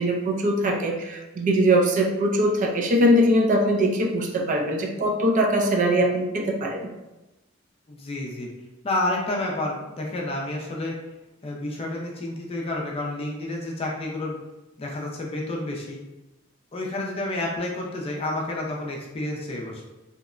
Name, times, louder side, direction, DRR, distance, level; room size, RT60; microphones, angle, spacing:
voice 1, 0.0-6.9, right 1 dB, 40° right, 1 dB, 0.3 m, -22 dB
voice 2, 7.9-8.5 8.8-11.0 11.4-14.4 14.8-16.0 16.7-19.9, left 2 dB, 30° left, -1 dB, 0.4 m, -30 dB
2.8 x 2.1 x 2.4 m, 1.0 s
head